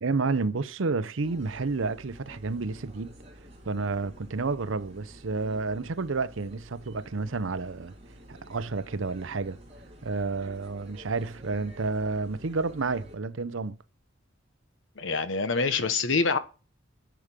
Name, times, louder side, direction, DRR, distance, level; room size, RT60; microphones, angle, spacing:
voice 1, 0.0-3.2 3.7-7.9 8.3-9.6 10.0-13.8, right 4 dB, 90° right, 0.7 m, -30 dB
sound 1, 1.2-13.2, equal, 30° right, 3.5 m, -50 dB
voice 2, 15.0-16.4, left 4 dB, 75° left, 1.1 m, -25 dB
10.5 x 5.1 x 7.5 m
head